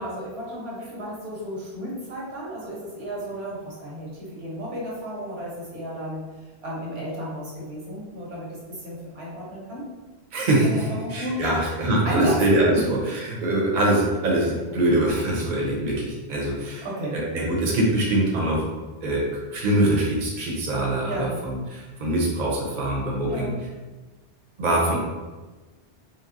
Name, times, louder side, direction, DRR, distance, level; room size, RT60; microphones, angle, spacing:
voice 1, 0.0-6.2 6.6-9.9 10.6-11.6 12.0-12.4 12.7-12.8 16.8-17.2 21.0-21.3 23.2-23.6, equal, 80° right, -5 dB, 1.2 m, -33 dB
voice 2, 10.3-10.8 11.1-16.9 17.1-18.6 19.0-23.5 24.6-25.0, right 1 dB, 50° right, -3 dB, 0.8 m, -23 dB
4.1 x 2.0 x 2.5 m, 1.2 s
omnidirectional pair, 1.1 m